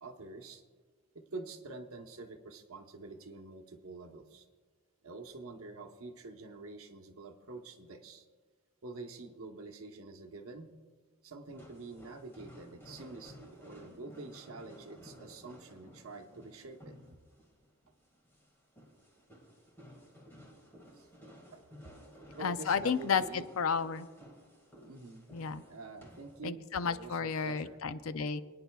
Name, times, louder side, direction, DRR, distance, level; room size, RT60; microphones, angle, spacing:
voice 1, 0.0-0.6 1.1-4.4 5.0-8.3 8.8-10.7 11.2-17.2 20.9-21.1 21.5-22.0 22.4-23.5 24.8-25.3 25.5-27.8, right 3 dB, 70° right, 4 dB, 1.0 m, -47 dB
sound 1, 11.5-26.4, equal, 10° left, 1.9 m, -55 dB
voice 2, 22.4-24.1 25.3-25.6 26.4-28.4, left 6 dB, 65° left, 12 dB, 0.5 m, -32 dB
28.5 x 9.5 x 2.3 m, 1.5 s
head